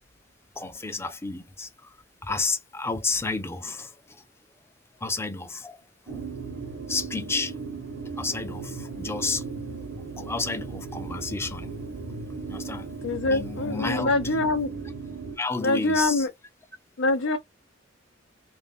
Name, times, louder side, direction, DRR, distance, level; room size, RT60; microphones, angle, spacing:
voice 1, 0.6-2.0 2.2-4.2 5.0-5.8 6.1-6.3 6.9-7.5 8.2-9.4 10.0-11.7 12.5-12.9 13.3-14.3 15.4-16.3, left 3 dB, 15° left, 0.4 m, -31 dB
sound 1, 6.1-15.4, right 4 dB, 70° right, 0.8 m, -36 dB
voice 2, 13.0-14.7 15.6-16.3 17.0-17.4, left 2 dB, 85° left, 0.5 m, -24 dB
2.5 x 2.1 x 3.4 m
head